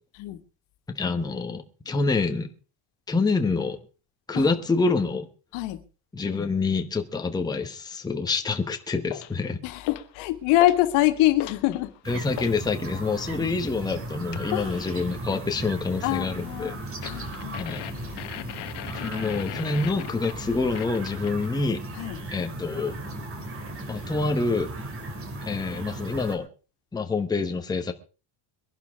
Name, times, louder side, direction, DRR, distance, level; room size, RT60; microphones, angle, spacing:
voice 1, 0.9-2.5 3.1-3.8 4.3-5.3 6.1-9.6 12.1-16.7 17.0-17.1 17.6-17.9 18.9-21.8 22.3-23.0 23.9-24.7 25.4-26.5 26.9-27.9, left 4 dB, 10° left, 1.1 m, -27 dB
sound 1, 9.1-9.4 9.8-10.2 10.6-10.9 11.2-12.6 14.3-14.6 17.0-21.5, left 15 dB, 55° left, 1.2 m, -38 dB
voice 2, 9.6-11.9 14.5-14.8 16.0-17.7 18.9-19.4 22.0-22.2, left 16 dB, 80° left, 2.0 m, -25 dB
sound 2, 12.0-26.4, right 2 dB, 25° right, 2.8 m, -37 dB
23.0 x 11.5 x 3.6 m
cardioid pair, 165°, 48 cm